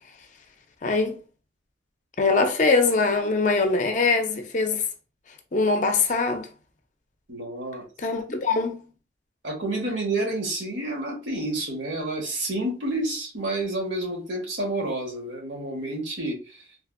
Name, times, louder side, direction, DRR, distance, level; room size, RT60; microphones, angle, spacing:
voice 1, 0.8-1.2 2.2-4.9 5.5-6.5 8.0-8.8, left 3 dB, 40° left, 0.5 m, -22 dB
voice 2, 7.3-7.8 9.4-16.6, right 2 dB, 70° right, 1.2 m, -29 dB
3.3 x 2.5 x 2.4 m
head